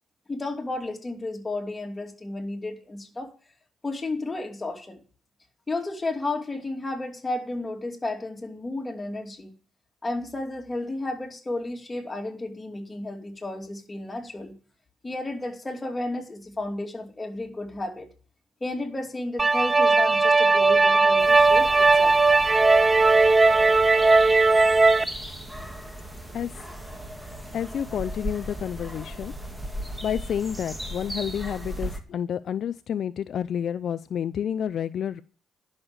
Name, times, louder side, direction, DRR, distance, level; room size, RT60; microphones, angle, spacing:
voice 1, 0.3-3.3 3.8-5.0 5.7-9.5 10.0-14.6 15.0-18.1 18.6-22.2, left 2 dB, 20° left, 2 dB, 2.6 m, -32 dB
sound 1, 19.4-25.0, right 3 dB, 25° right, 0.7 m, -18 dB
sound 2, 21.2-32.0, equal, 5° right, 2.1 m, -37 dB
voice 2, 27.5-29.3 30.0-35.2, left 9 dB, 65° left, 12 dB, 0.5 m, -29 dB
11.0 x 6.5 x 8.8 m, 0.39 s
cardioid pair, 90°, 0 cm